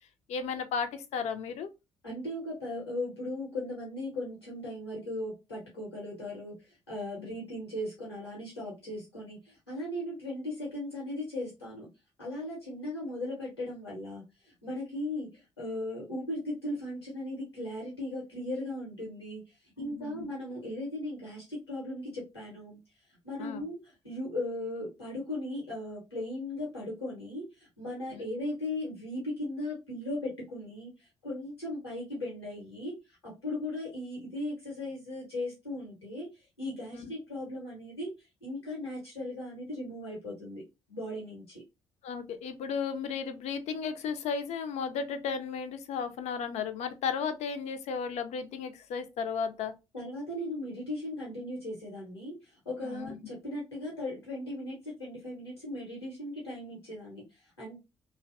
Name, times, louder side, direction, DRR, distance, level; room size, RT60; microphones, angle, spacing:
voice 1, 0.3-1.7 7.2-7.3 19.8-20.3 23.4-23.7 28.1-28.2 36.9-37.1 42.0-49.7 52.8-53.2, left 6 dB, 55° left, 0.4 m, -34 dB
voice 2, 2.0-6.6 6.9-11.9 12.2-14.2 14.6-19.4 19.8-22.8 23.2-30.9 31.2-32.9 33.2-36.3 36.6-38.1 38.4-41.6 49.9-57.2 57.6-57.8, left 1 dB, 90° left, 0.8 m, -37 dB
2.5 x 2.1 x 2.5 m
figure-of-eight pair, 45°, 13 cm